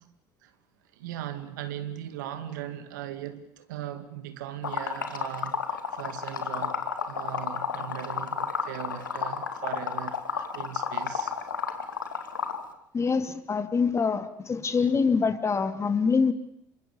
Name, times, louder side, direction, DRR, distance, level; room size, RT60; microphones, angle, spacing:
voice 1, 0.9-11.4, right 11 dB, 75° right, 2.2 m, -39 dB
Liquid, 4.6-12.6, left 6 dB, 85° left, 2.2 m, -31 dB
voice 2, 12.9-16.3, left 5 dB, 30° left, 2.6 m, -25 dB
27.0 x 24.0 x 7.0 m
hypercardioid pair, 65°, 10 cm